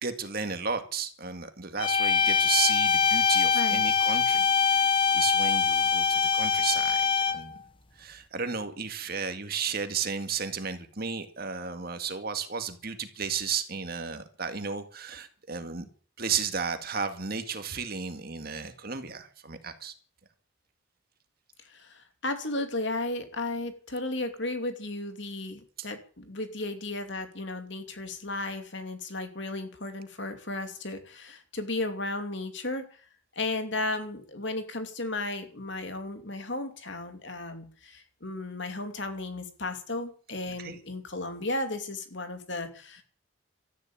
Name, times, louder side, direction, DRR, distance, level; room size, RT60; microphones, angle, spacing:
voice 1, 0.0-7.6 8.0-15.9 16.2-19.9 25.8-25.9 40.5-40.8, right 6 dB, 45° right, 2.0 m, -33 dB
sound 1, 1.8-7.5, left 6 dB, 25° left, 1.0 m, -24 dB
voice 2, 21.6-32.8 33.4-43.0, left 2 dB, 60° left, 2.8 m, -34 dB
13.5 x 11.0 x 8.9 m
head